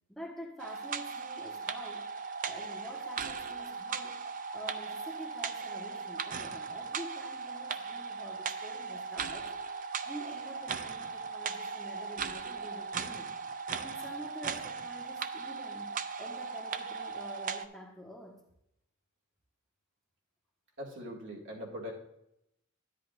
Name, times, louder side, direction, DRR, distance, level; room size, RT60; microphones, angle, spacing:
voice 1, 0.1-2.1 2.4-4.2 4.5-9.5 10.0-13.3 13.7-18.4, equal, ahead, -1 dB, 1.2 m, -47 dB
sound 1, 0.6-17.6, right 5 dB, 40° right, 0.4 m, -38 dB
voice 2, 20.8-21.9, equal, 60° right, -2 dB, 2.1 m, -41 dB
10.5 x 9.7 x 2.5 m, 0.82 s
head